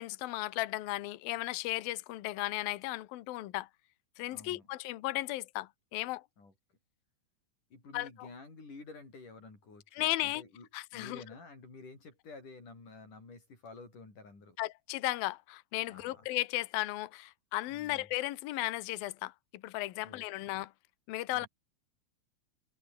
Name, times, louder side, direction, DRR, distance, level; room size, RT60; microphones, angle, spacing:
voice 1, 0.0-3.7 4.2-6.2 7.9-8.3 9.9-10.4 10.7-11.2 14.6-20.7 21.1-21.5, left 18 dB, 85° left, 2.1 m, -35 dB
voice 2, 4.3-4.7 6.4-6.5 7.7-14.6 15.9-16.3 17.7-18.1 20.0-20.5 21.3-21.5, left 3 dB, 40° left, 9.4 m, -51 dB
omnidirectional pair, 5.9 m